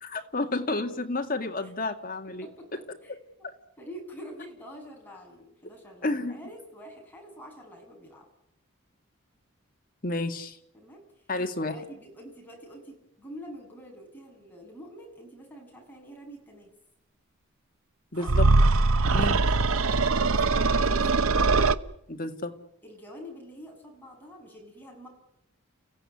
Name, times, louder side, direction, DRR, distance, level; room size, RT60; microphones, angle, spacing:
voice 1, 0.0-2.5 3.4-3.5 6.0-6.4 10.0-10.6 11.3-11.8 18.1-18.5 19.1-19.4 22.1-22.5, left 2 dB, 45° left, 5 dB, 2.1 m, -30 dB
voice 2, 3.8-8.3 10.7-16.7 18.2-18.3 19.1-21.3 22.8-25.1, equal, 10° left, 0 dB, 7.1 m, -46 dB
sound 1, 18.2-21.7, right 3 dB, 90° right, 0.9 m, -21 dB
29.5 x 16.0 x 9.8 m, 0.81 s
head